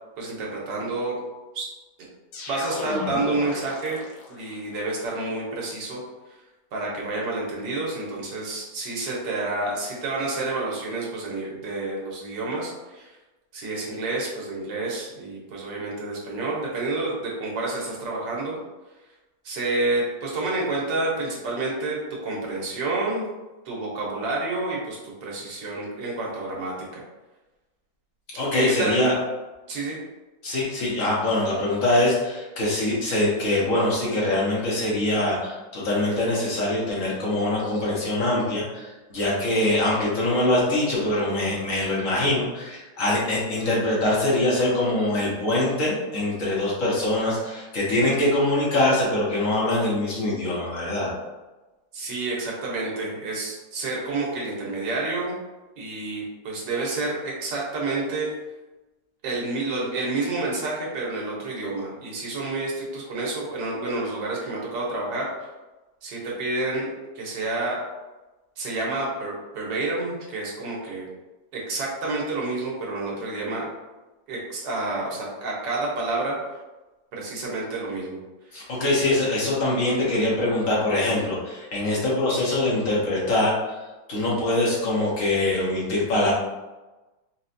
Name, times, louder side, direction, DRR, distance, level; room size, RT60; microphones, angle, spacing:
voice 1, 0.2-1.2 1.5-1.7 2.5-4.0 4.3-6.0 6.7-13.1 13.5-18.6 19.4-23.3 23.6-27.0 28.5-29.0 29.7-30.0 51.9-55.3 55.8-58.3 59.2-65.5 66.0-66.9 67.1-67.8 68.6-71.1 71.5-73.7 74.3-76.4 77.1-78.2 78.6-78.7, right 2 dB, 85° right, -3 dB, 1.5 m, -29 dB
sound 1, 2.3-4.6, left 2 dB, 75° left, 1.3 m, -34 dB
voice 2, 28.3-29.1 30.4-51.1 78.5-86.3, left 1 dB, 55° left, -5 dB, 1.1 m, -23 dB
4.2 x 2.1 x 2.5 m, 1.1 s
omnidirectional pair, 1.8 m